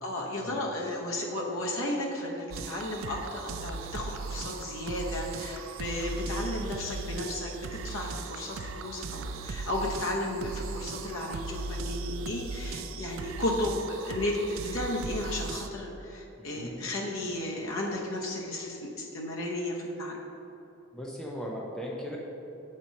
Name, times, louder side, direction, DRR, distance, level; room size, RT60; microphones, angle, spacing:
voice 1, 0.0-7.6 7.8-20.2, left 1 dB, 75° left, -2 dB, 0.9 m, -34 dB
sound 1, 2.5-15.7, right 4 dB, 70° right, 0.4 m, -38 dB
voice 2, 16.4-16.9 20.9-22.2, equal, 5° left, -3 dB, 0.6 m, -38 dB
7.1 x 4.4 x 5.2 m, 3.0 s
head